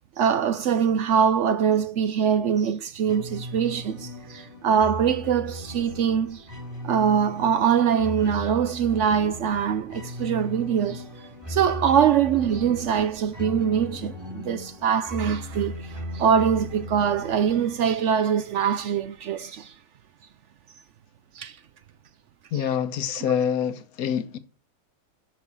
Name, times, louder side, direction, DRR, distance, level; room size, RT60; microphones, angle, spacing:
voice 1, 0.2-6.4 6.8-11.0 11.5-19.7 21.4-21.6, right 7 dB, 70° right, 0.7 m, -23 dB
sound 1, 3.0-18.5, left 1 dB, 15° right, 2.4 m, -37 dB
voice 2, 22.5-24.4, left 8 dB, 70° left, 1.2 m, -26 dB
6.4 x 6.1 x 7.3 m
omnidirectional pair, 1.7 m